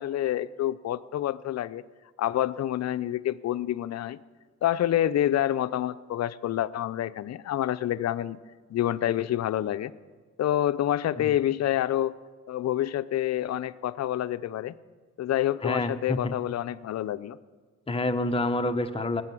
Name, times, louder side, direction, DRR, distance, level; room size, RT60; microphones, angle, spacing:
voice 1, 0.0-1.8 2.2-4.2 4.6-8.4 8.7-9.9 10.4-12.2 12.5-14.7 15.2-17.4, left 12 dB, 60° left, 14 dB, 0.6 m, -27 dB
voice 2, 15.6-16.3 17.9-19.2, left 2 dB, 20° left, 6 dB, 1.1 m, -28 dB
19.0 x 8.4 x 7.8 m, 1.5 s
cardioid pair, 90°, 30 cm